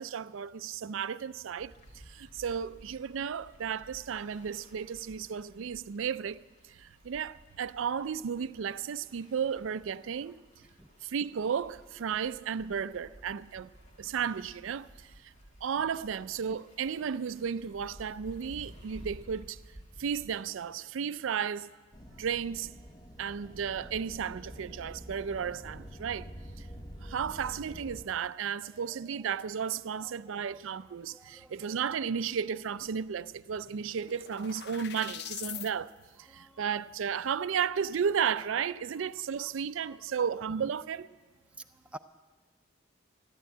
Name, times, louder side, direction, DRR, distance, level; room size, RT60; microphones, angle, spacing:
voice 1, 0.0-1.7 2.1-6.4 6.7-10.4 11.0-13.7 14.0-15.3 15.6-19.6 20.0-21.7 22.2-22.7 23.2-26.3 26.6-26.7 27.0-35.9 36.2-41.1, right 7 dB, 80° right, 0.4 m, -34 dB
sound 1, 1.6-20.4, equal, 35° left, 1.8 m, -54 dB
sound 2, 21.9-28.1, equal, 20° left, 0.8 m, -47 dB
voice 2, 28.7-29.4 30.0-31.8 35.5-35.9 36.2-36.7 39.0-39.5 39.8-40.0 41.5-42.0, right 2 dB, 5° right, 0.4 m, -53 dB
sound 3, 33.2-35.7, left 10 dB, 50° left, 0.5 m, -43 dB
14.0 x 11.0 x 9.0 m
head